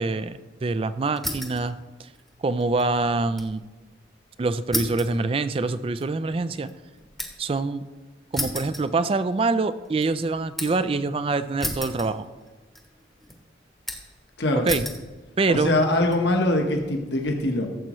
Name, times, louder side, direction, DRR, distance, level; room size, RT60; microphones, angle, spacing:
voice 1, 0.0-2.1 2.4-3.6 4.4-6.7 7.4-7.9 8.3-12.3 14.6-14.8 15.4-15.7, right 3 dB, 30° right, 13 dB, 0.3 m, -25 dB
sound 1, 1.2-1.7 2.0-3.6 3.9-4.0 4.7-7.6 8.3-9.5 9.8-10.9 11.6-12.5 12.7-13.3 13.9-14.2 14.7-15.1 15.7-16.2, left 1 dB, ahead, 0.9 m, -33 dB
voice 2, 15.5-17.7, left 1 dB, 65° left, 2 dB, 1.2 m, -22 dB
14.0 x 7.4 x 3.1 m, 1.2 s
head